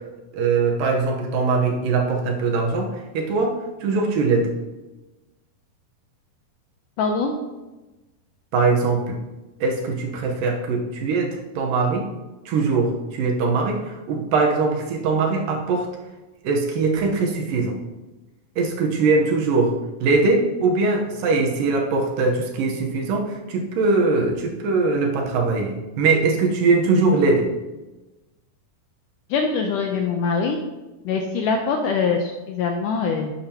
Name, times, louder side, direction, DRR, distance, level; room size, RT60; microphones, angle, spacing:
voice 1, 0.3-4.5 8.5-9.2 9.6-12.1 12.5-15.9 16.4-17.8 18.6-27.5, right 3 dB, 70° right, 1 dB, 2.5 m, -21 dB
voice 2, 7.0-7.3 29.3-30.6 31.1-33.3, left 5 dB, 80° left, 3 dB, 1.9 m, -23 dB
11.5 x 8.8 x 2.9 m, 1.1 s
omnidirectional pair, 4.4 m